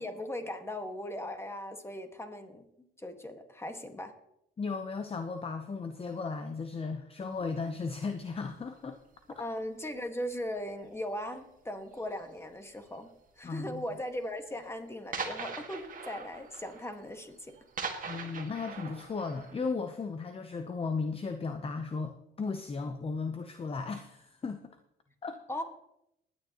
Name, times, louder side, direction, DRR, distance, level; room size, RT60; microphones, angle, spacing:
voice 1, 0.0-2.7 3.0-4.1 9.4-17.6 18.0-18.2 25.5-25.6, left 1 dB, 15° left, 6 dB, 1.6 m, -39 dB
voice 2, 4.6-9.0 9.4-9.5 13.4-13.8 18.1-24.8 25.2-25.4, left 4 dB, 30° left, 8 dB, 0.7 m, -36 dB
sound 1, 7.5-7.7 8.5-8.9 9.1-9.6 10.0-10.2 10.7-10.8 11.0-11.1 11.9-12.4 13.2-13.3 13.6-13.7 14.1-14.2 14.5-14.6 15.1-19.8, right 5 dB, 45° right, 1.7 m, -41 dB
20.5 x 9.4 x 3.0 m, 0.81 s
cardioid pair, 90°, 20 cm